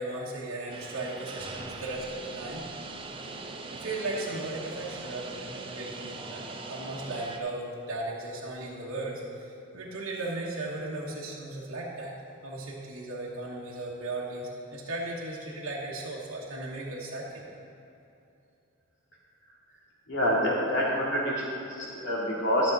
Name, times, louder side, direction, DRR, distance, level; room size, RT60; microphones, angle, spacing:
voice 1, 0.0-2.6 3.7-12.1 12.4-17.5, right 2 dB, 80° right, -5 dB, 1.2 m, -36 dB
sound 1, 0.7-7.4, right 3 dB, 25° right, 0.5 m, -41 dB
voice 2, 20.1-22.7, equal, 55° left, -5 dB, 2.3 m, -27 dB
12.5 x 6.6 x 4.0 m, 2.8 s
head